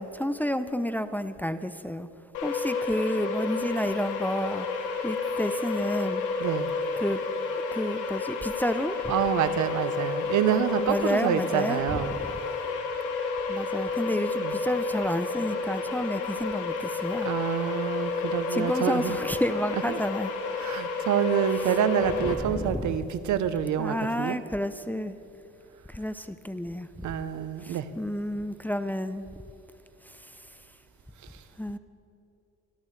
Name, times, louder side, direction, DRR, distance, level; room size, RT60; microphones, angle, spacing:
voice 1, 0.0-2.1 2.4-4.7 5.0-6.2 7.0-7.2 7.7-9.0 10.9-12.0 13.5-17.3 18.5-20.3 22.2-22.9 23.8-25.1 25.9-26.9 27.6-29.2 30.1-30.4 31.6-31.8, equal, 5° left, 11 dB, 0.5 m, -30 dB
sound 1, 2.3-22.3, left 4 dB, 90° left, 1.9 m, -31 dB
voice 2, 6.4-6.7 9.1-12.2 14.4-14.5 17.2-19.2 19.9-20.0 20.6-24.4 27.0-27.9, right 9 dB, 70° right, 13 dB, 0.8 m, -27 dB
25.5 x 13.0 x 3.3 m, 2.8 s
cardioid pair, 90°, 30 cm